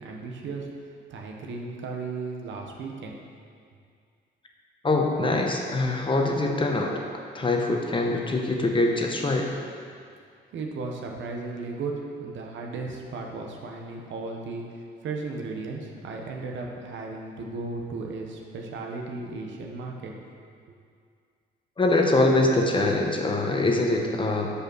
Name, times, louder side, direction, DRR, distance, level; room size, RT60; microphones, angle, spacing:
voice 1, 0.0-3.2 10.5-20.1, right 3 dB, 70° right, 1 dB, 0.9 m, -35 dB
voice 2, 4.8-6.9 7.3-9.5 21.8-24.5, left 2 dB, 25° left, 1 dB, 0.9 m, -23 dB
5.2 x 4.9 x 6.3 m, 2.2 s
cardioid pair, 90°, 20 cm